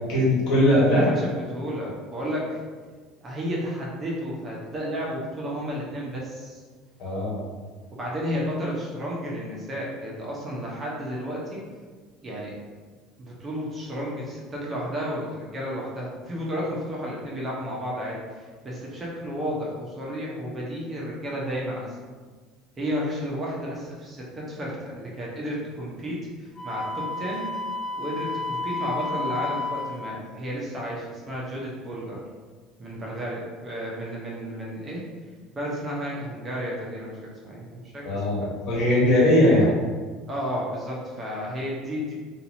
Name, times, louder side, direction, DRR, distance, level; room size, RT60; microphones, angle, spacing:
voice 1, 0.1-1.1 7.0-7.4 38.0-39.7, left 1 dB, 60° left, -6 dB, 1.2 m, -20 dB
voice 2, 0.9-2.6 3.2-6.6 7.9-11.6 12.2-12.6 13.2-18.2 18.6-21.9 22.8-27.5 27.9-32.2 32.8-35.0 35.5-37.2 37.4-38.6 40.3-42.1, equal, 30° right, -4 dB, 1.0 m, -32 dB
Wind instrument woodwind instrument, 26.5-30.1, left 2 dB, 30° left, 1.2 m, -31 dB
2.8 x 2.6 x 2.7 m, 1.5 s
hypercardioid pair, 80°, 0 cm